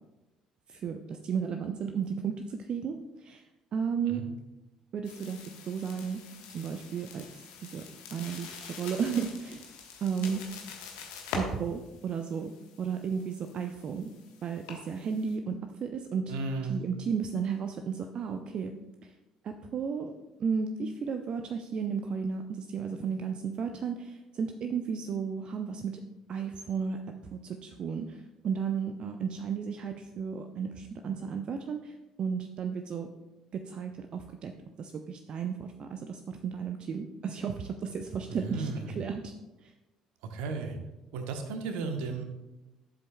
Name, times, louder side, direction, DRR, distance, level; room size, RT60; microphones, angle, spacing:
voice 1, 0.7-3.5 3.7-4.2 4.9-5.4 5.6-6.2 6.5-7.3 7.6-7.8 8.1-9.6 10.0-10.4 11.3-12.5 12.8-14.1 14.4-16.3 16.7-18.7 19.0-19.1 19.4-20.1 20.4-26.0 26.3-27.0 27.3-33.1 33.5-34.5 34.8-39.3 39.6-39.7, right 6 dB, 45° right, 6 dB, 0.5 m, -34 dB
sound 1, 5.0-15.3, left 4 dB, 65° left, 1.2 m, -44 dB
voice 2, 16.3-16.8 38.3-38.9 40.3-40.8 41.1-42.2, right 4 dB, 65° right, 5 dB, 1.0 m, -34 dB
12.0 x 7.5 x 2.2 m, 1.0 s
figure-of-eight pair, 50°, 2 cm